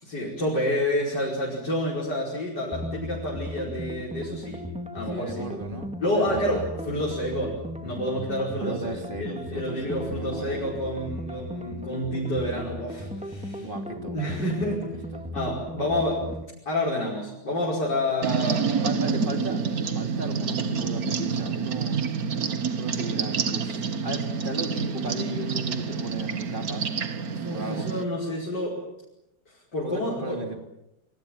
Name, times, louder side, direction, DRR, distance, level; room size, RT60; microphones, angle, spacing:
voice 1, 0.0-4.6 4.9-5.5 6.0-7.5 7.8-13.7 14.1-14.8 15.3-16.4 16.7-18.7 27.2-28.8 29.7-30.5, left 1 dB, 85° left, -4 dB, 6.0 m, -29 dB
sound 1, 2.7-16.4, left 1 dB, 5° right, 1.7 m, -36 dB
voice 2, 5.1-6.7 7.0-7.1 8.6-10.6 13.5-14.4 15.1-15.2 18.8-19.6 19.9-22.0 22.7-26.9 27.5-27.9 29.8-30.6, right 2 dB, 30° right, 5 dB, 3.3 m, -36 dB
sound 2, 18.2-28.0, right 5 dB, 60° right, 1.9 m, -28 dB
27.5 x 24.0 x 7.4 m, 0.86 s
omnidirectional pair, 1.8 m